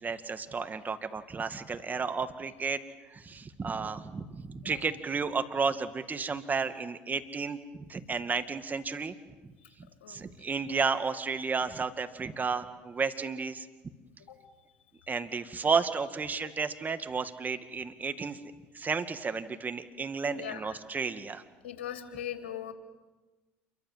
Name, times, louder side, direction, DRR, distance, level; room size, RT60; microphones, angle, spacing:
voice 1, 0.0-2.8 3.1-9.1 10.1-13.7 15.1-18.4 18.7-21.4, right 5 dB, 30° right, 9 dB, 2.2 m, -32 dB
voice 2, 10.0-10.5 14.3-14.4 15.0-15.1 16.4-16.5 20.3-20.8 21.6-22.7, left 10 dB, 85° left, 6 dB, 3.1 m, -40 dB
28.5 x 23.5 x 7.6 m, 1.2 s
hypercardioid pair, 75°, 6 cm